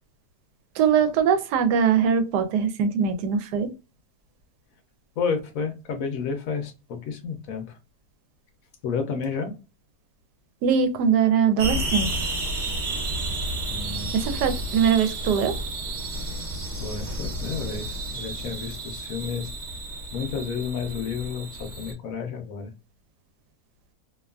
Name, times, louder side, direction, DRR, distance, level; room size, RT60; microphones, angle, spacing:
voice 1, 0.7-3.7 10.6-12.1 14.1-15.6, right 7 dB, 90° right, 1.2 m, -22 dB
voice 2, 5.2-7.8 8.8-9.5 13.7-14.1 16.8-19.5 20.1-22.7, left 6 dB, 65° left, 0.9 m, -31 dB
sound 1, 11.6-21.9, right 1 dB, 60° right, 1.0 m, -31 dB
2.8 x 2.3 x 2.3 m
omnidirectional pair, 1.7 m